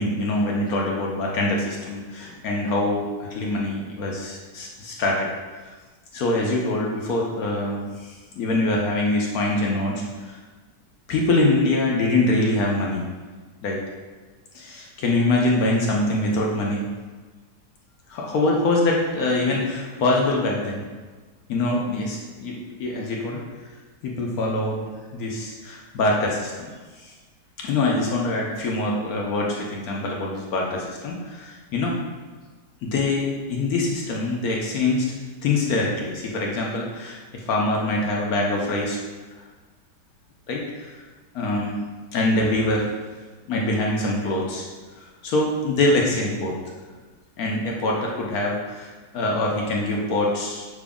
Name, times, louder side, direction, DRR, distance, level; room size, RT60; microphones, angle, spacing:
voice 1, 0.0-5.3 6.1-10.4 11.1-13.0 13.6-13.8 14.5-16.8 18.1-20.8 21.5-23.4 24.0-24.9 25.1-26.7 27.0-27.1 27.6-31.9 32.8-35.1 35.4-39.0 40.5-41.0 41.3-41.8 42.1-42.9 43.5-44.7 45.0-46.5 47.4-50.7, left 2 dB, 70° left, -2 dB, 0.9 m, -24 dB
5.9 x 2.2 x 3.5 m, 1.4 s
omnidirectional pair, 1.9 m